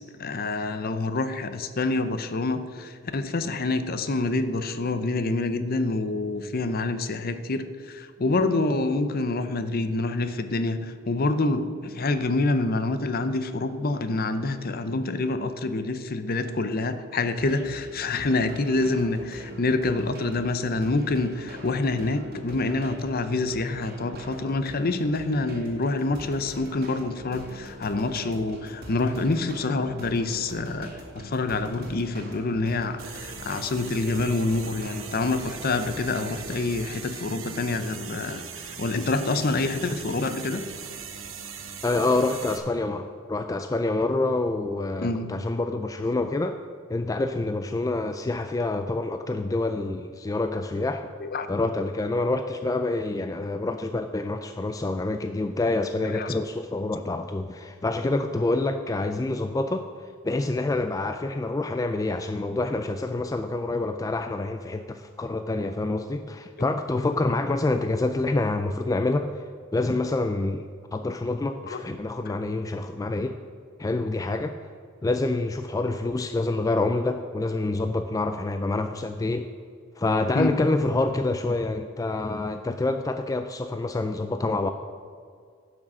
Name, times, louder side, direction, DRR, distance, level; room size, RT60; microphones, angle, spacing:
voice 1, 0.2-40.6 45.0-45.3 51.2-51.5 56.0-56.3 67.3-67.4 71.7-71.8 80.3-80.6, left 2 dB, 45° left, 10 dB, 0.6 m, -27 dB
sound 1, 17.4-36.7, right 1 dB, 50° right, 2.0 m, -43 dB
sound 2, 33.0-42.6, right 7 dB, 70° right, 1.0 m, -40 dB
voice 2, 41.8-46.6 46.9-51.1 51.5-59.9 60.2-69.3 69.7-70.7 70.9-73.4 73.8-74.6 75.0-79.5 80.0-84.7, left 2 dB, 15° left, 7 dB, 0.3 m, -27 dB
10.5 x 6.2 x 6.2 m, 2.1 s
head